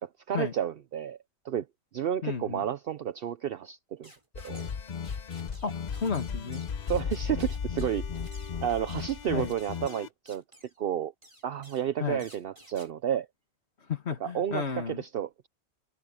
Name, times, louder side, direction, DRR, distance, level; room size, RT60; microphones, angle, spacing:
voice 1, 0.0-1.2 1.4-1.7 1.9-4.1 4.4-4.7 6.9-8.0 8.6-10.4 10.8-11.1 11.4-13.3 14.2-15.5, right 10 dB, 60° right, 0.8 m, -31 dB
voice 2, 2.2-2.7 5.6-6.6 9.3-9.5 12.0-12.2 13.9-15.0, left 6 dB, 75° left, 2.1 m, -32 dB
sound 1, 4.0-4.8 5.0-10.8 11.2-11.9 12.2-12.9, right 1 dB, 25° right, 6.9 m, -54 dB
sound 2, 4.3-10.1, left 6 dB, 45° left, 0.8 m, -35 dB
omnidirectional pair, 1.1 m